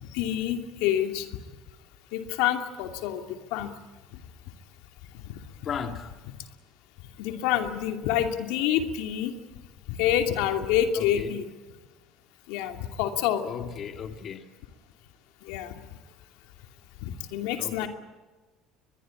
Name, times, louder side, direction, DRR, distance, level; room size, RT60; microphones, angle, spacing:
voice 1, 0.0-1.3 2.1-3.2 3.5-3.7 5.2-5.4 7.2-9.3 9.9-11.4 12.5-13.4 15.5-15.7 17.0-17.9, left 10 dB, 80° left, 2.6 m, -27 dB
voice 2, 5.6-6.1 11.0-11.3 13.4-14.5 17.5-17.9, left 7 dB, 45° left, 1.9 m, -36 dB
23.0 x 21.5 x 8.7 m
supercardioid pair, 100°, 0 cm